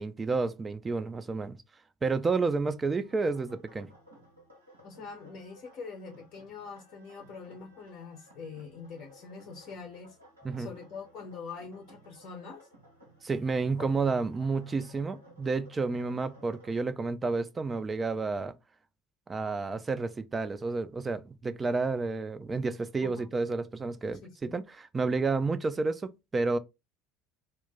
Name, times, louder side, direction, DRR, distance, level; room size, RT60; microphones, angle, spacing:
voice 1, 0.0-1.6 2.0-3.9 10.4-10.7 13.2-18.5 19.3-26.6, right 4 dB, 25° right, 0.4 m, -30 dB
sound 1, 3.0-16.7, right 1 dB, 90° right, 0.8 m, -57 dB
voice 2, 4.8-10.2 10.6-12.7 13.8-13.9 23.0-23.3 24.2-24.6, left 5 dB, 50° left, 0.6 m, -44 dB
2.2 x 2.0 x 3.6 m
figure-of-eight pair, 65°, 0 cm